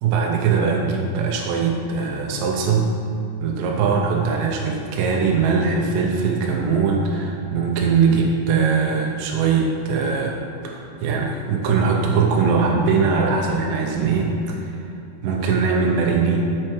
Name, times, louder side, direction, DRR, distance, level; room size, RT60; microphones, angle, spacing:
voice 1, 0.0-2.9 3.4-14.8 15.2-16.5, right 5 dB, 85° right, 0 dB, 2.0 m, -21 dB
8.7 x 7.5 x 3.1 m, 2.8 s
omnidirectional pair, 4.7 m